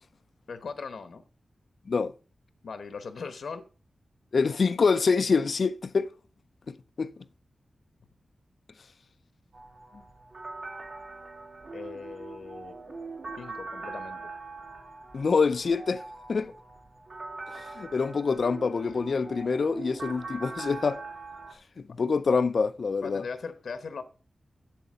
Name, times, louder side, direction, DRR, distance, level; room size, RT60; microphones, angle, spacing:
voice 1, 0.5-1.2 2.6-3.6 11.7-13.0 13.4-14.3 18.9-19.0 23.0-24.0, left 5 dB, 80° left, 1.0 m, -39 dB
voice 2, 4.3-6.1 6.7-7.1 15.1-16.0 16.3-16.5 17.8-21.0 21.8-23.2, left 4 dB, 55° left, 0.5 m, -26 dB
sound 1, 9.5-21.5, right 3 dB, 70° right, 3.6 m, -42 dB
8.1 x 7.8 x 5.1 m
wide cardioid pair, 135°, 0 cm